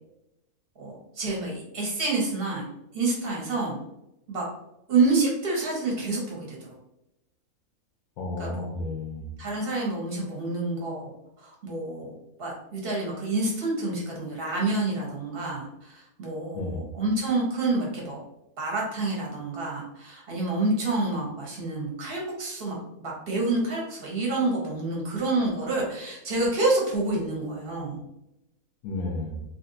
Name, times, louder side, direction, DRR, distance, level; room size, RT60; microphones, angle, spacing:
voice 1, 0.8-2.6 2.9-3.8 4.3-4.5 4.9-6.7 8.4-8.6 9.4-11.1 11.4-12.1 12.4-18.2 18.6-28.0, right 2 dB, 45° right, -2 dB, 1.1 m, -28 dB
voice 2, 8.2-9.3 16.5-16.8 28.8-29.4, left 2 dB, 70° left, -1 dB, 1.0 m, -32 dB
3.2 x 2.6 x 2.6 m, 0.87 s
omnidirectional pair, 1.5 m